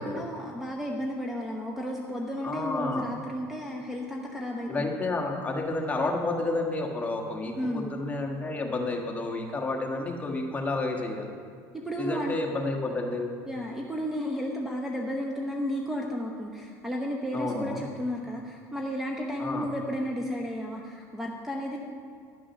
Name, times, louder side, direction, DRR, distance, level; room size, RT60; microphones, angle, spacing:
voice 1, 0.0-4.9 7.5-7.9 11.7-12.4 13.5-21.8, equal, 5° right, 0 dB, 0.9 m, -33 dB
voice 2, 2.4-3.1 4.7-11.3 12.0-13.3 17.3-17.9 19.4-19.7, left 2 dB, 15° left, 1 dB, 1.4 m, -30 dB
11.0 x 6.1 x 6.3 m, 2.2 s
supercardioid pair, 120°, 8 cm